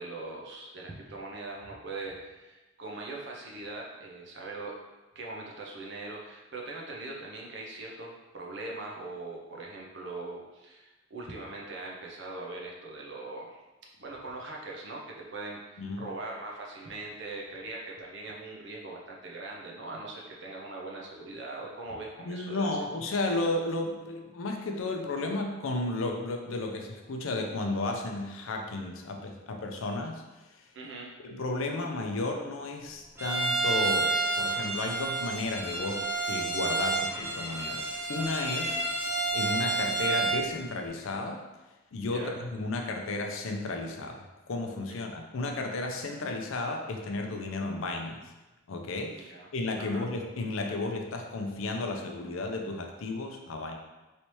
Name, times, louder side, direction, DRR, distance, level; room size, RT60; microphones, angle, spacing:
voice 1, 0.0-4.8 5.1-13.6 14.0-22.7 30.7-31.1 38.6-38.8 42.1-42.4 44.9-45.0 49.1-49.5 49.8-50.1, right 2 dB, 60° right, -2 dB, 0.6 m, -41 dB
voice 2, 22.2-30.2 31.2-38.8 39.3-41.4 41.9-48.2 48.7-49.2 49.5-53.8, left 2 dB, 75° left, 3 dB, 0.5 m, -33 dB
Bowed string instrument, 33.2-40.4, right 3 dB, 10° right, 0.4 m, -30 dB
3.2 x 2.8 x 3.0 m, 1.1 s
head